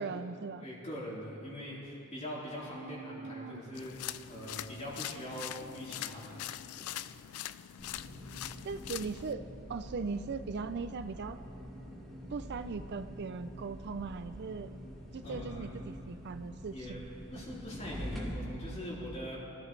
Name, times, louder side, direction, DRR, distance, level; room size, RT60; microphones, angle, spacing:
voice 1, 0.0-0.7 2.8-3.6 8.7-9.4 9.7-11.4 12.3-14.7 15.1-17.0, right 4 dB, 50° right, 11 dB, 0.4 m, -39 dB
voice 2, 0.6-7.2 15.2-15.7 16.7-17.0 17.3-19.4, equal, 30° left, -6 dB, 4.1 m, -43 dB
sound 1, 3.7-9.3, left 12 dB, 85° left, 0.4 m, -43 dB
sound 2, 7.8-18.3, equal, ahead, 2.6 m, -45 dB
24.5 x 14.0 x 3.3 m, 2.8 s
head